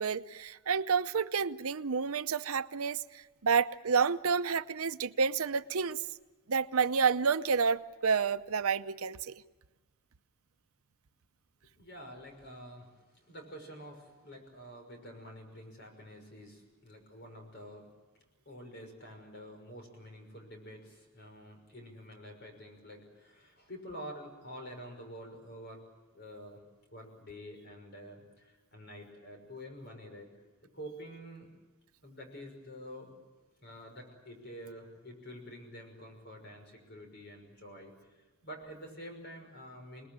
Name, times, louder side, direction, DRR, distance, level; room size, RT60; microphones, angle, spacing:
voice 1, 0.0-3.0 3.4-6.0 6.5-9.3, right 5 dB, 80° right, 12 dB, 0.7 m, -29 dB
voice 2, 11.8-17.9 18.5-25.8 26.1-26.6 26.9-30.3 30.7-31.5 32.0-33.1 33.6-37.9 38.4-40.1, equal, 50° left, 4 dB, 6.0 m, -48 dB
27.5 x 20.0 x 8.8 m, 1.2 s
head